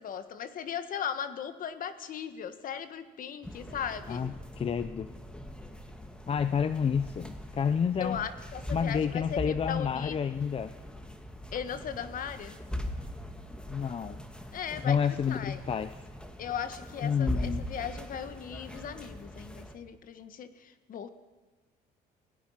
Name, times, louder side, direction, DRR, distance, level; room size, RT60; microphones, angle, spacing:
voice 1, 0.0-4.3 8.0-10.1 11.5-12.6 14.5-15.6 16.4-21.1, left 8 dB, 55° left, 11 dB, 1.7 m, -38 dB
sound 1, 3.4-19.7, equal, 5° left, 2.1 m, -41 dB
voice 2, 4.1-5.1 6.3-8.2 8.7-10.7 13.7-14.2 14.8-15.9 17.0-17.6, left 7 dB, 35° left, 12 dB, 0.7 m, -29 dB
28.0 x 17.5 x 5.9 m, 1.3 s
cardioid pair, 110°, 17 cm